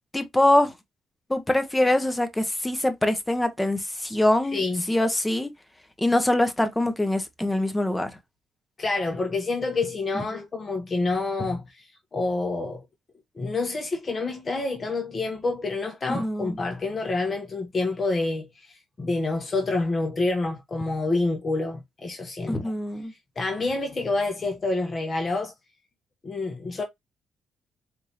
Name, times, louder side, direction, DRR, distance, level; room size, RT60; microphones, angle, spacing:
voice 1, 0.1-0.7 1.3-4.6 4.9-5.5 6.0-8.1 16.1-16.5 22.5-23.1, left 1 dB, 10° left, 1.2 m, -23 dB
voice 2, 4.5-4.9 8.8-12.8 13.3-22.6 23.4-25.5 26.2-26.8, left 3 dB, 35° left, 1.2 m, -28 dB
4.7 x 3.6 x 2.9 m
cardioid pair, 90°, 0 cm